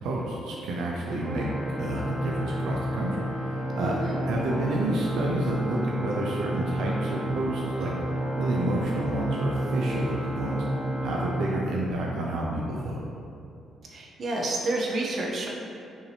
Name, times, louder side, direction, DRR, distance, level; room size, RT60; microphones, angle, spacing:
voice 1, 0.0-7.9 8.4-10.6 11.0-13.0, right 1 dB, 85° right, -3 dB, 0.5 m, -30 dB
Organ, 1.2-12.3, right 1 dB, 20° right, 0.4 m, -31 dB
voice 2, 3.8-4.2 13.8-15.5, right 2 dB, 55° right, -2 dB, 0.7 m, -29 dB
5.4 x 2.7 x 3.3 m, 2.6 s
cardioid pair, 90°, 0 cm